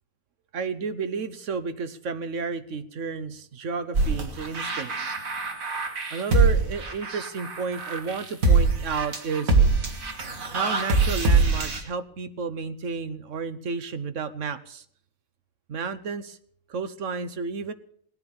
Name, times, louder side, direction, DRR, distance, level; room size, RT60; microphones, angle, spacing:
voice 1, 0.5-5.1 6.1-9.5 10.5-14.8 15.7-16.4 16.7-17.7, right 5 dB, 65° right, 12 dB, 1.3 m, -31 dB
sound 1, 3.9-11.8, right 3 dB, 85° right, 2.3 m, -23 dB
19.0 x 9.6 x 7.0 m, 0.62 s
omnidirectional pair, 1.4 m